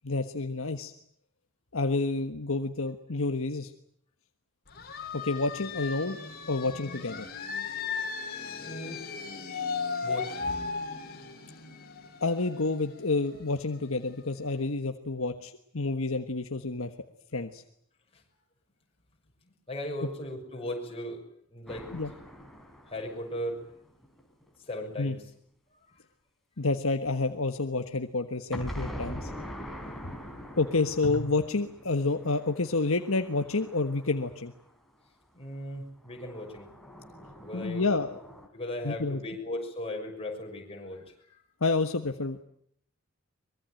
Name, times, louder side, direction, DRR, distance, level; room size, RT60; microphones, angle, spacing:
voice 1, 0.0-0.9 1.7-3.7 5.1-6.2 6.5-7.3 12.2-16.9 17.3-17.6 21.9-22.1 25.0-25.1 26.6-29.3 30.6-34.5 37.5-38.2 38.8-39.2 41.6-42.4, left 3 dB, 70° left, 6 dB, 1.4 m, -29 dB
sound 1, 4.7-14.2, left 5 dB, 45° left, 4.3 m, -36 dB
voice 2, 8.6-9.0 10.0-10.5 18.1-18.2 19.7-21.2 21.5-21.9 22.9-23.6 24.7-25.2 25.9-26.0 35.3-36.7 37.4-37.9 38.5-41.0 41.3-41.4, left 1 dB, 25° left, 1 dB, 6.4 m, -37 dB
sound 2, 21.7-24.5 28.5-34.8 36.0-38.5, equal, ahead, 4.0 m, -43 dB
24.0 x 22.5 x 9.1 m, 0.67 s
head